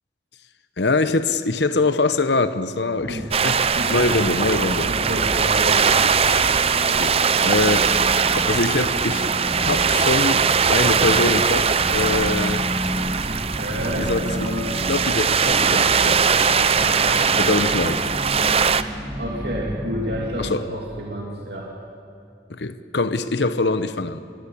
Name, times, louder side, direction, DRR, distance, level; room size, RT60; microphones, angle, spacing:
voice 1, 0.8-4.9 6.9-8.1 8.5-12.6 14.0-14.5 14.9-16.2 17.4-18.0 20.4-20.7 22.5-24.2, left 3 dB, 70° left, 11 dB, 1.0 m, -24 dB
sound 1, 3.0-20.6, equal, 10° right, 1.5 m, -32 dB
sound 2, 3.3-18.8, right 6 dB, 35° right, 0.7 m, -20 dB
voice 2, 3.7-4.5 4.8-6.1 13.2-14.7 16.8-17.3 19.2-21.7, equal, 60° right, -2 dB, 3.0 m, -30 dB
23.0 x 22.5 x 8.6 m, 2.3 s
head